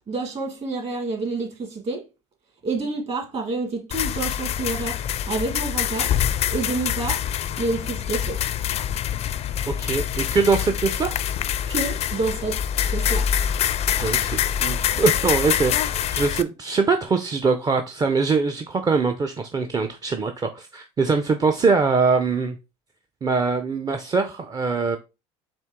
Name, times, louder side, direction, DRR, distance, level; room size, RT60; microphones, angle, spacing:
voice 1, 0.1-2.0 2.6-6.1 6.5-7.2 7.6-8.4 11.7-12.6 12.9-13.3, right 3 dB, 40° right, 1.7 m, -28 dB
sound 1, 3.9-16.4, left 9 dB, 40° left, 0.4 m, -25 dB
voice 2, 9.7-11.1 14.0-22.6 23.2-25.0, right 4 dB, 25° right, 0.5 m, -23 dB
4.4 x 2.9 x 3.5 m
hypercardioid pair, 80°, 16 cm